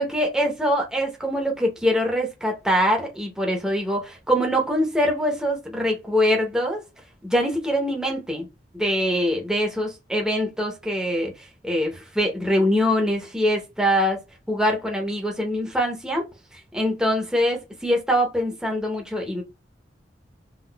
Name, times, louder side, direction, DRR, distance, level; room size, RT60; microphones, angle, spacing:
voice 1, 0.0-6.8 7.2-8.5 8.7-14.2 14.5-16.3 16.5-19.4, equal, 5° right, 0.8 m, -23 dB
3.8 x 2.3 x 2.3 m
head